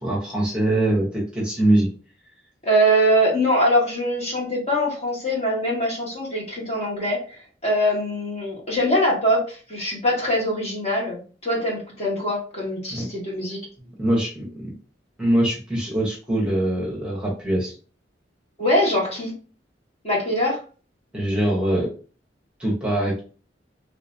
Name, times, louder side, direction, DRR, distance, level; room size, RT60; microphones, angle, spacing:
voice 1, 0.0-1.9 12.9-13.1 14.0-14.7 15.2-17.7 21.1-21.9 22.6-23.2, right 1 dB, 5° right, -5 dB, 1.0 m, -23 dB
voice 2, 2.6-7.2 7.6-13.6 18.6-19.3 20.0-20.6, equal, 35° left, -4 dB, 1.4 m, -22 dB
3.3 x 2.8 x 2.6 m, 0.38 s
head